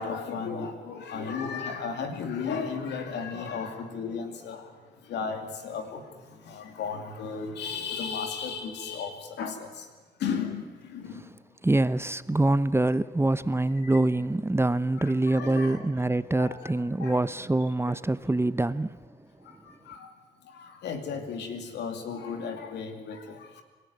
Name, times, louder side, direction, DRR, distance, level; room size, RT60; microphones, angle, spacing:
voice 1, 0.0-4.7 5.0-9.9 10.2-11.2 13.8-13.9 14.9-15.8 16.4-16.7 17.0-17.2 17.8-18.0 19.4-20.1 20.5-23.6, left 5 dB, 90° left, 2.6 m, -35 dB
voice 2, 11.6-19.0, right 2 dB, 15° right, 0.8 m, -25 dB
25.0 x 14.0 x 9.4 m
supercardioid pair, 55°, 17 cm